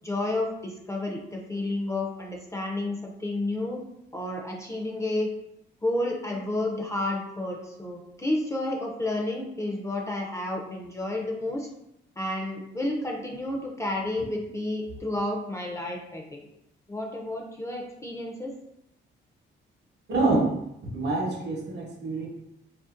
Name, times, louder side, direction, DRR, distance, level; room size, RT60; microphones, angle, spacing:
voice 1, 0.0-3.8 4.1-5.3 5.8-11.7 12.2-16.4 16.9-18.5, left 1 dB, 15° left, 0 dB, 0.4 m, -31 dB
voice 2, 20.1-20.4 20.9-22.3, right 2 dB, 60° right, -1 dB, 0.8 m, -26 dB
2.5 x 2.1 x 2.4 m, 0.81 s
cardioid pair, 90°, 20 cm